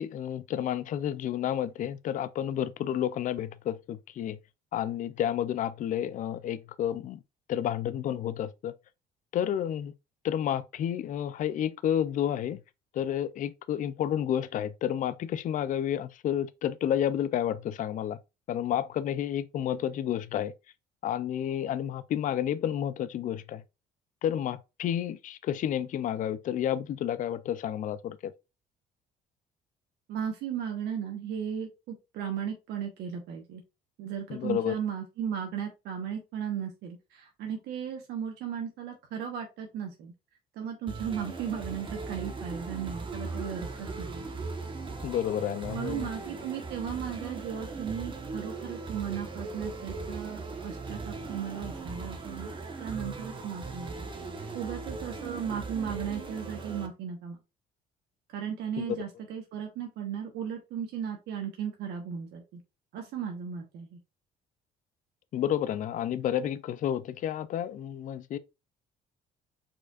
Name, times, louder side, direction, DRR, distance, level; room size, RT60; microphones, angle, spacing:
voice 1, 0.0-4.4 4.7-7.2 7.5-8.7 9.3-9.9 10.2-12.6 12.9-18.2 18.5-20.5 21.0-23.6 24.2-28.3 34.3-34.8 45.0-46.1 58.8-59.0 65.3-68.4, left 10 dB, 50° left, 0.4 m, -30 dB
voice 2, 30.1-33.6 34.0-40.1 40.6-44.2 45.7-52.5 52.8-53.9 54.5-57.4 58.3-62.6 62.9-64.0, right 8 dB, 80° right, 1.1 m, -36 dB
sound 1, 40.9-56.9, right 3 dB, 30° right, 1.1 m, -39 dB
4.9 x 4.4 x 2.4 m
cardioid pair, 110°, 17 cm